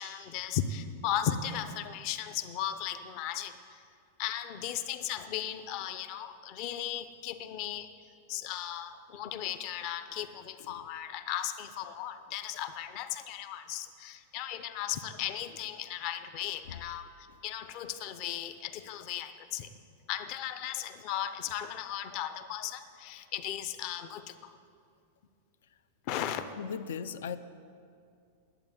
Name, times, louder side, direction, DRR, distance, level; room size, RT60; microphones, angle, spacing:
voice 1, 0.0-3.8 4.2-7.9 8.3-19.7 20.1-24.5 26.1-26.5, left 10 dB, 35° left, 11 dB, 0.6 m, -36 dB
voice 2, 26.6-27.4, left 7 dB, 85° left, 13 dB, 0.6 m, -38 dB
11.0 x 7.9 x 9.0 m, 2.4 s
supercardioid pair, 175°, 0 cm